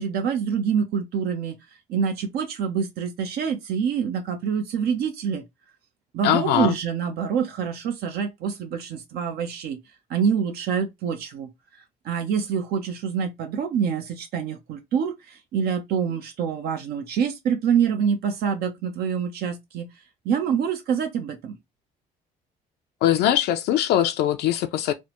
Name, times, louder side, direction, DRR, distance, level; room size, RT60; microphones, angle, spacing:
voice 1, 0.0-1.6 1.9-5.4 6.1-9.8 10.1-19.9 20.2-21.6, right 7 dB, 70° right, 0.6 m, -26 dB
voice 2, 6.2-6.7 23.0-24.9, left 11 dB, 75° left, 0.4 m, -21 dB
3.2 x 2.0 x 2.9 m
cardioid pair, 110°, 17 cm